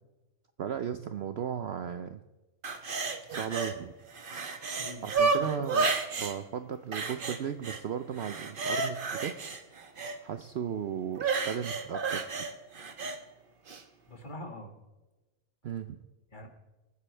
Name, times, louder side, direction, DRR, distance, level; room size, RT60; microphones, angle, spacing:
voice 1, 0.6-2.2 3.3-3.9 5.0-5.9 6.2-9.3 10.2-12.3 15.6-16.0, right 8 dB, 60° right, 9 dB, 0.7 m, -36 dB
sound 1, 2.6-3.7 4.1-6.3 6.9-7.8 8.1-10.2 11.2-13.2 13.7-13.8, right 4 dB, 40° right, 1.1 m, -31 dB
voice 2, 4.8-5.7 14.1-14.7 16.3-16.5, left 1 dB, 35° left, 3 dB, 2.0 m, -44 dB
25.0 x 9.6 x 3.3 m, 1.1 s
omnidirectional pair, 1.6 m